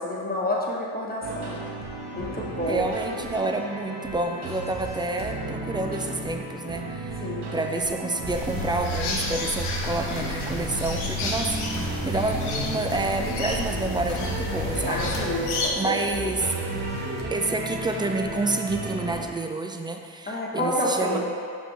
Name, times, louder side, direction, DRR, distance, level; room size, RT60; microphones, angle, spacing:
voice 1, 0.0-1.6 2.1-2.8 7.2-7.5 14.8-16.5 20.3-21.2, left 1 dB, 20° left, -3 dB, 1.3 m, -29 dB
sound 1, 1.2-19.3, right 2 dB, 55° right, 1.2 m, -34 dB
voice 2, 2.7-15.1 15.8-16.5 17.3-21.2, right 2 dB, 10° right, 4 dB, 0.4 m, -29 dB
sound 2, 8.3-15.7, left 3 dB, 80° left, 1.1 m, -31 dB
sound 3, 8.5-17.2, right 2 dB, 90° right, 0.9 m, -36 dB
6.1 x 5.2 x 3.3 m, 2.2 s
supercardioid pair, 70°, 49 cm